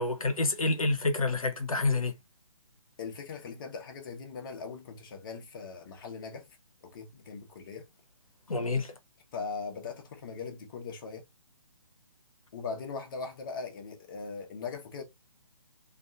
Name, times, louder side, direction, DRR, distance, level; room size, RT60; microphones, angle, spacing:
voice 1, 0.0-2.1 8.5-8.9, left 3 dB, 85° left, 0.7 m, -28 dB
voice 2, 3.0-6.5 6.8-7.9 9.3-11.2 12.5-15.0, left 5 dB, 40° left, 0.7 m, -40 dB
2.6 x 2.4 x 2.3 m
figure-of-eight pair, 140°, 18 cm